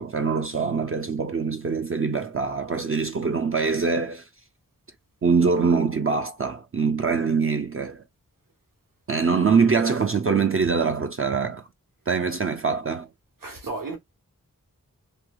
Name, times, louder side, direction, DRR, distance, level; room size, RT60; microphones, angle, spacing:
voice 1, 0.0-4.3 5.2-8.0 9.1-11.7 12.1-13.1, right 5 dB, 40° right, 0.4 m, -23 dB
voice 2, 13.4-14.0, right 3 dB, 75° right, 1.3 m, -33 dB
3.2 x 2.7 x 2.2 m
wide cardioid pair, 75°, 33 cm